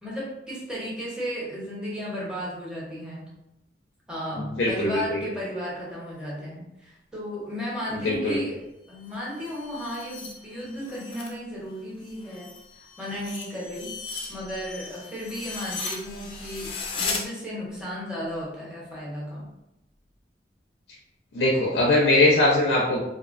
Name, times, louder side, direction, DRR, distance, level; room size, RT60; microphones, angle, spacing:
voice 1, 0.0-3.3 4.1-12.5 12.8-13.9 14.3-19.5, equal, 5° right, -7 dB, 0.8 m, -34 dB
voice 2, 4.6-5.2 8.0-8.4 21.3-23.0, left 2 dB, 90° left, -3 dB, 0.4 m, -21 dB
sound 1, 8.9-11.4 11.7-17.2, left 4 dB, 30° left, 0.4 m, -37 dB
2.5 x 2.1 x 2.4 m, 0.88 s
head